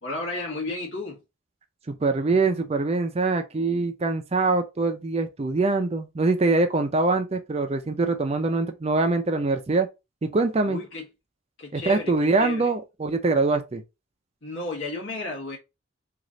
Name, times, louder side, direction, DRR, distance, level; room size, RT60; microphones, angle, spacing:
voice 1, 0.0-1.2 10.7-11.1 11.6-12.8 14.4-15.6, left 2 dB, 65° left, 1.4 m, -33 dB
voice 2, 1.9-9.9 10.2-10.8 11.7-13.8, right 3 dB, 30° right, 0.4 m, -23 dB
3.1 x 2.5 x 3.8 m
head